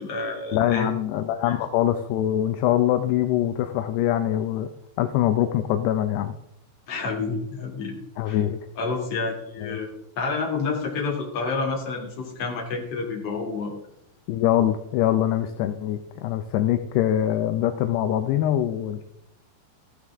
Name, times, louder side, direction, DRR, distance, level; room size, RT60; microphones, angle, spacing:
voice 1, 0.0-0.9 1.4-1.6 6.9-8.0 8.3-8.4 8.8-9.9 10.2-13.7, left 4 dB, 40° left, -1 dB, 3.1 m, -29 dB
voice 2, 0.5-4.7 5.0-6.3 8.2-8.6 9.6-9.8 14.3-19.0, left 12 dB, 80° left, 8 dB, 2.6 m, -23 dB
14.5 x 12.5 x 3.6 m, 0.80 s
omnidirectional pair, 5.1 m